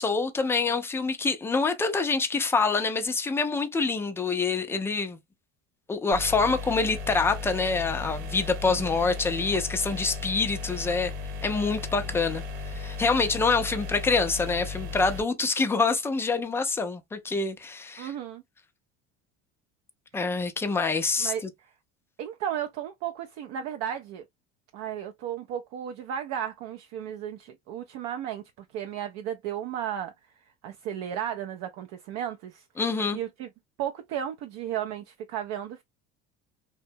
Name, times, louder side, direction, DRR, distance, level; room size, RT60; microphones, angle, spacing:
voice 1, 0.0-5.2 5.9-11.1 11.4-18.1 20.1-21.3 32.8-33.2, left 4 dB, 10° left, 0.3 m, -26 dB
sound 1, 6.1-15.2, left 4 dB, 80° right, 1.0 m, -36 dB
voice 2, 18.0-18.4 21.2-21.7 22.2-24.2 24.7-30.1 30.6-32.6 33.1-33.5 33.8-35.8, right 10 dB, 55° right, 0.4 m, -34 dB
2.7 x 2.1 x 2.6 m
supercardioid pair, 115°, 32 cm